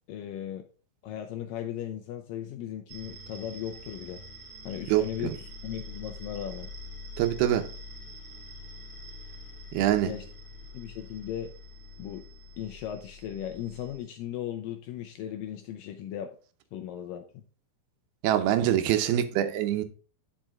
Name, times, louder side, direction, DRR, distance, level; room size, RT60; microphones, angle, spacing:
voice 1, 0.1-0.7 1.0-4.2 4.7-6.7 10.0-10.3 10.7-11.5 12.0-12.3 12.6-16.3 16.7-17.4, left 10 dB, 80° left, 2.1 m, -37 dB
sound 1, 2.9-14.0, left 2 dB, 25° right, 2.8 m, -45 dB
voice 2, 4.9-5.3 7.2-7.7 9.7-10.1 18.2-19.8, right 12 dB, 85° right, 2.7 m, -25 dB
10.5 x 5.5 x 3.6 m
omnidirectional pair, 4.4 m